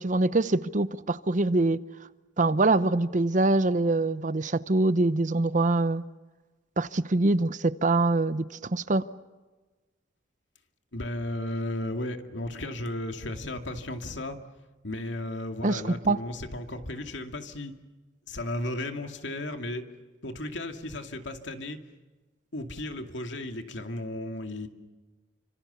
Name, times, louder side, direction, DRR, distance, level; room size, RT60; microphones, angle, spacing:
voice 1, 0.0-1.8 2.4-6.0 6.8-9.0 15.6-16.2, right 2 dB, 40° right, 0.8 m, -24 dB
voice 2, 10.9-14.4 14.8-17.7 18.3-19.8 20.2-21.8 22.5-24.7, left 1 dB, 70° left, 2.5 m, -34 dB
29.5 x 26.0 x 7.0 m
head